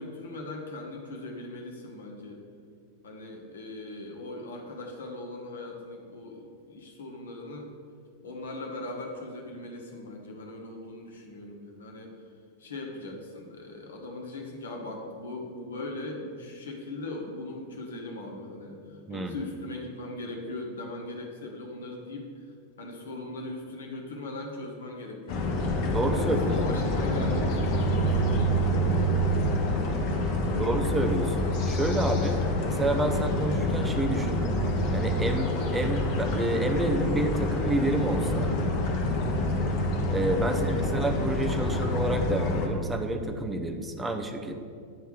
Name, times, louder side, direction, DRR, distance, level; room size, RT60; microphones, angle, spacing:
voice 1, 0.0-2.4 3.0-7.7 8.2-12.2 12.6-31.1 40.5-40.7, left 2 dB, 65° left, 1 dB, 1.2 m, -40 dB
sound 1, 25.3-42.7, left 1 dB, 40° left, 1.1 m, -27 dB
voice 2, 25.9-26.5 30.6-32.4 32.7-34.5 34.9-38.5 40.1-44.6, right 2 dB, 10° right, 5 dB, 0.7 m, -29 dB
9.3 x 3.4 x 6.4 m, 2.3 s
figure-of-eight pair, 90°, 0 cm